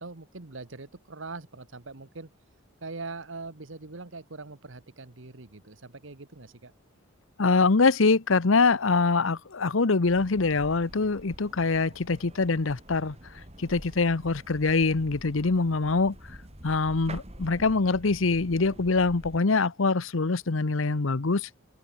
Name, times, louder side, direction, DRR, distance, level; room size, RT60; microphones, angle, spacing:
voice 1, 0.0-2.3 2.8-6.7, right 3 dB, 70° right, 1.5 m, -42 dB
voice 2, 7.4-13.2 13.6-16.2 16.6-21.5, left 3 dB, 80° left, 0.9 m, -24 dB
sound 1, 10.0-19.4, right 1 dB, 30° right, 5.8 m, -47 dB
head